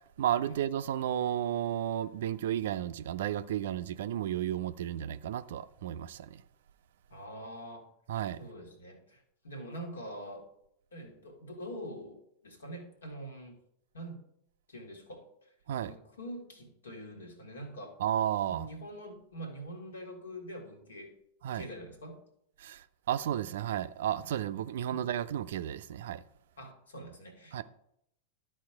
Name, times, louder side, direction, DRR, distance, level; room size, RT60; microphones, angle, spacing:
voice 1, 0.2-6.4 8.1-8.5 15.7-15.9 18.0-18.7 21.4-21.7 22.6-26.2 27.5-27.6, right 11 dB, 60° right, 0.4 m, -33 dB
voice 2, 7.1-7.9 8.4-10.5 10.9-13.5 13.9-14.2 14.7-15.3 15.8-18.0 18.5-21.1 21.5-22.2 24.9-25.0 26.6-27.6, right 1 dB, 70° left, 1.9 m, -44 dB
12.0 x 4.3 x 4.6 m
figure-of-eight pair, 90°, 0 cm